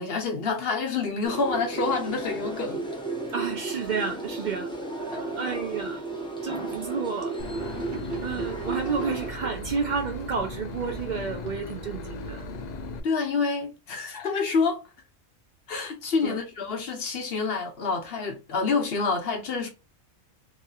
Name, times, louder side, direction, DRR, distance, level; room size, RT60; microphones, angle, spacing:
voice 1, 0.0-2.8 5.1-5.2 8.0-8.1 13.0-14.8 15.7-19.7, left 4 dB, 55° left, 0.9 m, -27 dB
sound 1, 1.2-9.3, right 3 dB, 5° left, 0.5 m, -34 dB
voice 2, 3.3-6.0 6.4-7.9 8.2-12.5 16.2-16.4, right 5 dB, 55° right, 0.5 m, -31 dB
Boat Water vehicle / Engine, 7.4-13.0, left 2 dB, 75° left, 0.4 m, -37 dB
Gurgling / Sink (filling or washing), 7.7-12.2, right 6 dB, 70° right, 1.3 m, -42 dB
3.0 x 2.7 x 2.3 m
omnidirectional pair, 1.3 m